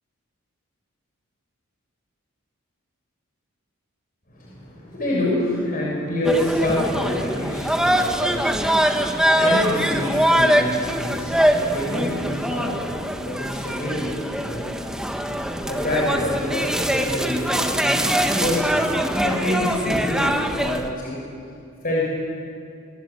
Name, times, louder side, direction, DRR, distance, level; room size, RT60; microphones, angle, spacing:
voice 1, 4.3-14.9 15.7-18.8 19.2-21.2 21.8-22.1, left 1 dB, 40° left, -4 dB, 6.3 m, -27 dB
sound 1, 6.2-20.9, equal, 5° right, 1.5 m, -23 dB
25.5 x 24.5 x 8.3 m, 2.5 s
head